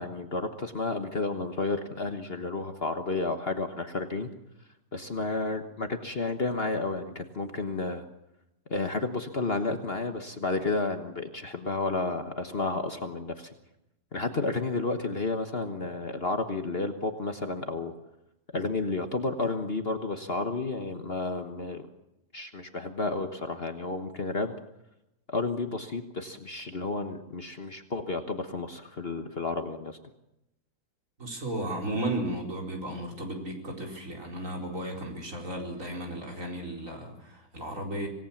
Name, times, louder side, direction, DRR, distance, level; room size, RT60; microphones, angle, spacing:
voice 1, 0.0-4.3 4.9-8.1 8.7-13.5 14.1-17.9 18.5-21.9 22.3-24.5 25.3-30.0, left 3 dB, 40° left, 6 dB, 1.5 m, -31 dB
voice 2, 31.2-38.1, right 1 dB, 50° right, 0 dB, 4.9 m, -34 dB
26.0 x 18.0 x 7.3 m, 0.89 s
omnidirectional pair, 1.7 m